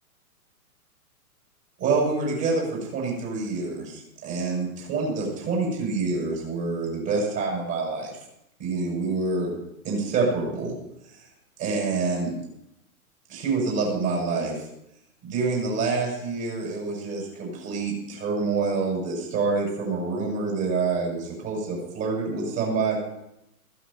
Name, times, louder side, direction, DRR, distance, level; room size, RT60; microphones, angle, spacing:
voice 1, 1.8-8.1 8.6-9.5 9.8-10.7 11.0-11.3 11.6-12.3 13.3-14.7 15.2-23.0, right 4 dB, 35° right, -2 dB, 7.1 m, -27 dB
15.0 x 15.0 x 4.4 m, 0.82 s
hypercardioid pair, 120°, 44 cm